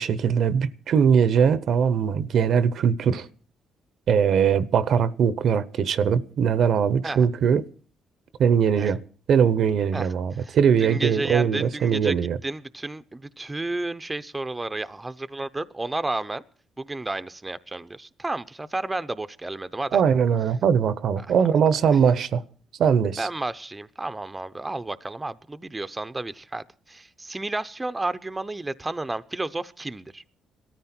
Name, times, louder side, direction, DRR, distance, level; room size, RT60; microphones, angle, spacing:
voice 1, 0.0-3.3 4.1-7.6 8.4-9.0 9.3-12.4 19.9-22.4 22.8-23.3, right 7 dB, 65° right, 0.9 m, -21 dB
voice 2, 9.9-16.4 16.8-20.0 21.2-21.3 21.9-22.0 23.2-30.2, right 2 dB, 15° right, 0.7 m, -32 dB
19.0 x 13.5 x 4.4 m
cardioid pair, 90°, 0 cm